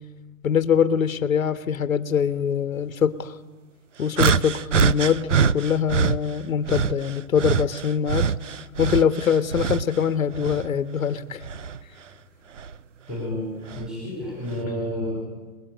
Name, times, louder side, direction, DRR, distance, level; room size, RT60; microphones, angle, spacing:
voice 1, 0.4-3.3 4.0-8.3 8.8-11.4, left 7 dB, 70° left, 11 dB, 1.4 m, -23 dB
sound 1, 4.2-6.2 6.7-10.0 10.3-11.8 12.6-12.7 13.7-13.9, right 7 dB, 60° right, 0.8 m, -24 dB
voice 2, 13.1-15.2, equal, ahead, -5 dB, 4.6 m, -30 dB
23.0 x 21.5 x 9.2 m, 1.2 s
hypercardioid pair, 175°, 43 cm